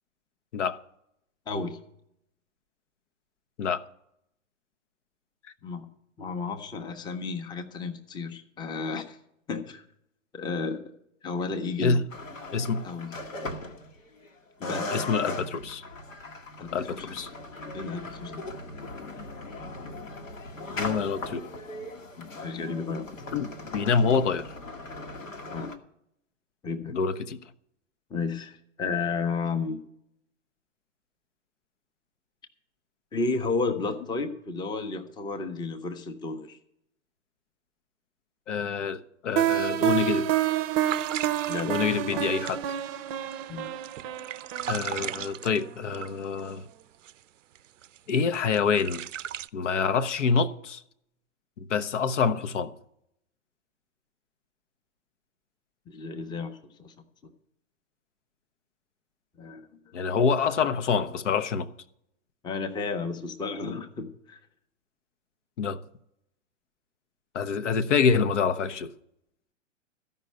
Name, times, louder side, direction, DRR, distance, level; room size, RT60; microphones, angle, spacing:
voice 1, 1.5-1.8 5.6-5.9 6.2-9.2 9.5-9.8 10.3-10.8 11.2-12.0 12.8-13.2 14.6-14.9 16.6-17.2 17.7-18.4 22.2-23.1 25.5-25.7 26.6-27.0 28.1-29.8 33.1-36.6 41.5-41.8 42.1-42.2 43.5-43.7 55.9-56.9 59.4-59.7 62.4-64.4, left 4 dB, 10° left, 0.7 m, -32 dB
sound 1, 12.1-14.3 14.6-25.8, left 2 dB, 85° left, 1.5 m, -38 dB
voice 2, 14.9-15.8 16.7-17.3 20.7-21.5 23.3-24.5 26.9-27.4 38.5-40.3 41.7-42.8 44.7-46.6 48.1-49.0 49.5-50.8 51.6-52.7 59.9-61.7 65.6-65.8 67.3-68.9, left 5 dB, 70° left, 0.8 m, -26 dB
sound 2, 39.4-46.1, right 11 dB, 30° right, 0.6 m, -29 dB
sound 3, 40.9-46.5 47.0-47.2 47.5-49.5, right 11 dB, 80° right, 0.5 m, -37 dB
13.5 x 5.5 x 7.9 m
hypercardioid pair, 115°, 38 cm